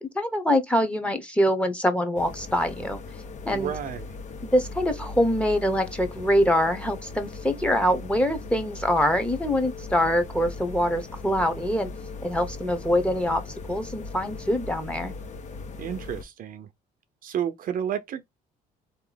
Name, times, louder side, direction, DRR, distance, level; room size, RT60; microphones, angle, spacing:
voice 1, 0.0-3.0 3.5-3.7 4.4-11.9 12.2-13.4 13.7-15.1, equal, 5° left, 1.0 m, -24 dB
sound 1, 2.2-16.2, left 3 dB, 45° left, 0.9 m, -39 dB
voice 2, 3.5-4.1 15.8-16.7 17.2-18.3, right 9 dB, 55° right, 0.7 m, -31 dB
3.8 x 3.0 x 3.9 m
cardioid pair, 110°, 17 cm